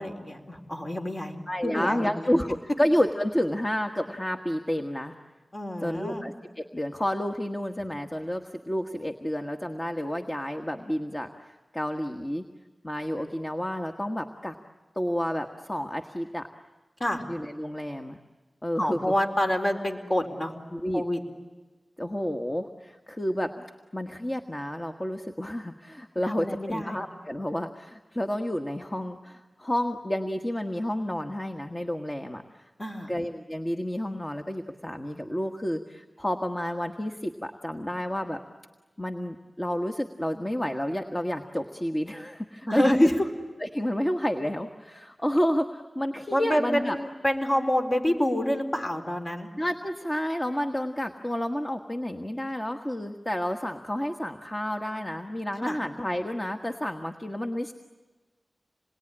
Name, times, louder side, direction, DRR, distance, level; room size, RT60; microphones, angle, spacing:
voice 1, 0.0-1.4 1.6-2.3 5.5-6.2 17.0-17.2 18.8-20.5 20.9-21.2 26.3-27.0 32.8-33.1 42.7-43.3 46.3-49.5 55.6-55.8, left 1 dB, 40° left, 4 dB, 4.0 m, -27 dB
voice 2, 1.5-5.1 5.8-12.5 12.8-14.6 14.9-16.5 17.3-18.2 18.6-19.0 20.7-21.0 22.0-23.6 23.9-32.7 33.1-38.4 39.0-43.0 43.6-47.0 49.6-57.7, equal, 25° left, 5 dB, 1.5 m, -30 dB
27.5 x 21.0 x 9.9 m, 1.3 s
cardioid pair, 45°, 0 cm